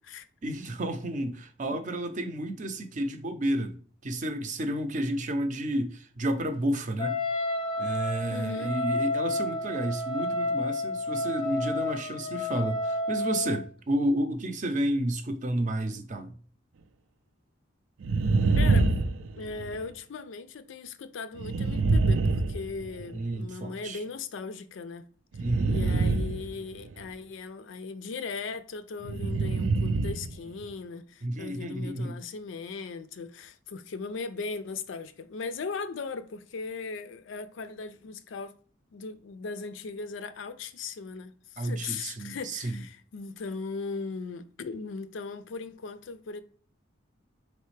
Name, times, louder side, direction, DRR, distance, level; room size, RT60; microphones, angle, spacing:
voice 1, 0.4-7.2 7.8-16.3 23.1-24.0 25.4-25.8 31.2-32.1 41.6-42.8, right 1 dB, 40° right, 0.6 m, -31 dB
Wind instrument woodwind instrument, 7.0-13.6, left 2 dB, 25° left, 0.5 m, -30 dB
voice 2, 8.3-8.8 18.6-18.9 19.4-25.1 25.7-38.5 38.9-46.4, left 4 dB, 75° left, 0.4 m, -38 dB
sound 1, 18.0-19.9 21.4-23.3 25.3-27.0 29.0-30.4 30.6-30.7, right 3 dB, 90° right, 0.4 m, -26 dB
4.1 x 3.3 x 3.2 m
head